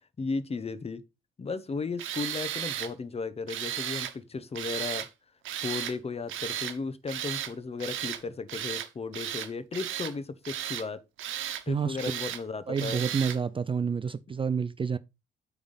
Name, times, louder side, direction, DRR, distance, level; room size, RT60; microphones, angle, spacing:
voice 1, 0.2-1.0 1.4-5.1 5.6-11.0 11.7-13.0, left 4 dB, 30° left, 0.9 m, -35 dB
Tools, 2.0-2.9 3.5-4.1 4.6-5.1 5.4-6.0 6.3-6.8 7.1-7.5 7.8-8.2 8.5-8.9 9.1-10.1 10.4-10.9 11.2-11.6 12.0-12.4 12.8-13.4, right 11 dB, 80° right, 1.0 m, -34 dB
voice 2, 11.7-12.0 12.7-15.0, right 6 dB, 25° right, 0.4 m, -29 dB
8.7 x 3.5 x 5.5 m
cardioid pair, 90°, 20 cm